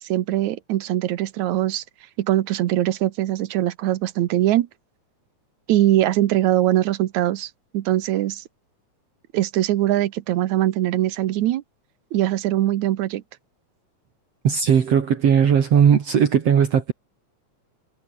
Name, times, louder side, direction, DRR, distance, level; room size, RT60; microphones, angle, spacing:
voice 1, 0.0-1.8 2.2-4.7 5.7-8.4 9.3-11.6 12.1-13.2, right 14 dB, 80° right, 2.3 m, -22 dB
voice 2, 14.4-16.9, right 8 dB, 60° right, 3.0 m, -17 dB
omnidirectional pair, 3.4 m